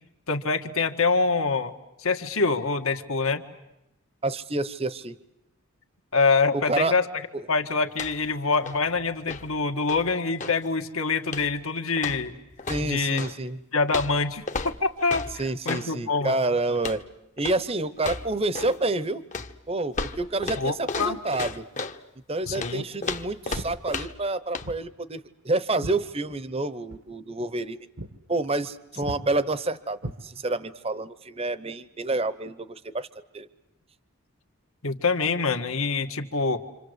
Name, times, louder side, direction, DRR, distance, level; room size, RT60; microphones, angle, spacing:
voice 1, 0.3-1.7 2.0-3.4 6.1-7.1 7.5-12.3 12.8-13.2 13.7-16.4 20.6-21.2 22.5-22.8 34.8-36.6, left 4 dB, 75° left, 5 dB, 1.8 m, -25 dB
voice 2, 4.2-5.2 6.5-7.0 7.3-7.5 12.7-13.6 15.4-17.0 17.4-19.2 19.7-21.7 22.3-27.8 28.3-33.1 33.3-33.5, right 2 dB, 25° right, 15 dB, 0.9 m, -28 dB
sound 1, 7.9-8.3 8.6-10.7 11.3-11.6 12.0-13.4 13.9-15.9 16.8-17.1 17.4-17.7 18.0-18.8 19.3-22.0 22.6-24.3 24.5-24.7, left 3 dB, 35° left, 1.0 m, -35 dB
Walk footsteps, 22.4-22.7 23.5-23.8 24.6-24.9 25.2-26.6 26.9-27.1 27.5-27.7 28.0-28.2 28.5-28.7 29.0-29.2 30.0-30.7, right 1 dB, 80° right, 1.7 m, -39 dB
27.0 x 27.0 x 8.1 m, 0.92 s
head